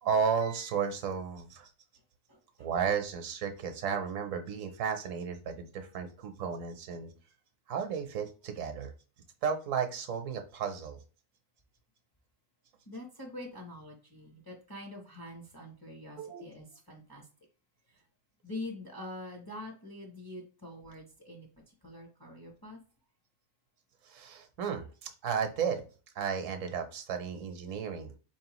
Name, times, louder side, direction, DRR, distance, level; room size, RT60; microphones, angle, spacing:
voice 1, 0.0-1.7 2.6-7.1 7.7-8.9 9.4-11.0 16.2-16.4 24.0-25.8 26.2-28.1, right 6 dB, 75° right, 7 dB, 1.0 m, -33 dB
voice 2, 2.3-2.7 12.9-17.3 17.9-18.0 18.4-22.8, left 1 dB, 25° left, 0 dB, 0.6 m, -45 dB
4.3 x 3.0 x 2.9 m, 0.37 s
omnidirectional pair, 1.4 m